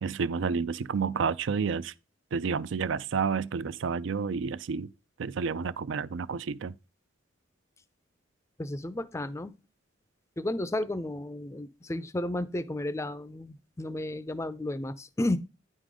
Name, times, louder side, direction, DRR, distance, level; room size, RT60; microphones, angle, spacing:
voice 1, 0.0-1.9 2.3-4.9 5.2-6.7, right 5 dB, 70° right, 0.4 m, -30 dB
voice 2, 8.6-9.5 10.4-15.4, left 1 dB, 15° left, 0.4 m, -33 dB
9.7 x 3.8 x 4.8 m
head